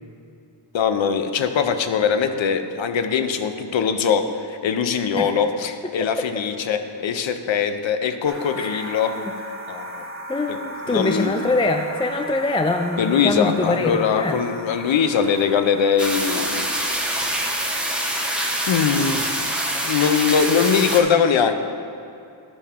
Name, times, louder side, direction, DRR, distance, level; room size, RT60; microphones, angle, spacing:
voice 1, 0.7-9.1 9.7-10.1 10.5-10.6 10.9-11.3 13.0-16.7 17.5-18.3 18.7-19.6 19.9-21.5, left 7 dB, 75° left, 8 dB, 0.6 m, -22 dB
sound 1, 8.3-18.0, equal, 30° right, 1.3 m, -37 dB
voice 2, 10.3-14.4, left 2 dB, 15° left, 6 dB, 0.3 m, -23 dB
sound 2, 16.0-21.0, right 1 dB, ahead, 1.1 m, -25 dB
12.0 x 5.6 x 3.6 m, 2.6 s
cardioid pair, 60°, 46 cm